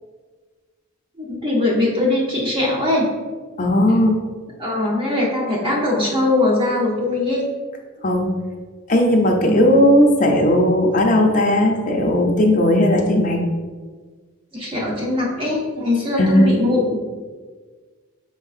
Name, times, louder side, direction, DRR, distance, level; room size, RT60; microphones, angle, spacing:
voice 1, 1.2-3.1 4.6-7.4 9.5-9.8 14.5-17.0, left 2 dB, 25° right, -3 dB, 0.6 m, -21 dB
voice 2, 3.6-4.2 8.0-8.4 8.9-13.4 16.2-16.5, left 1 dB, 35° left, 2 dB, 0.6 m, -16 dB
5.6 x 3.6 x 2.4 m, 1.4 s
head